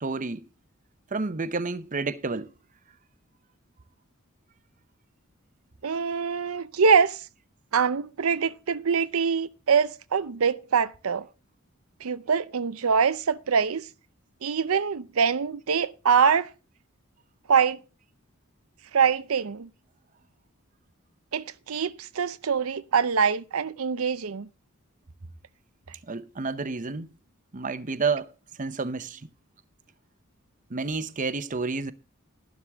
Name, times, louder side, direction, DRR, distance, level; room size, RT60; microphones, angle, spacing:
voice 1, 0.0-0.5 1.1-2.5 26.1-27.1 27.5-28.3 28.6-29.2 30.7-31.9, right 4 dB, 40° right, 0.8 m, -30 dB
voice 2, 5.8-7.2 7.7-11.3 12.0-13.9 14.4-16.5 17.5-17.8 18.9-19.7 21.3-24.5, right 6 dB, 90° right, 0.6 m, -24 dB
12.0 x 11.5 x 3.5 m
head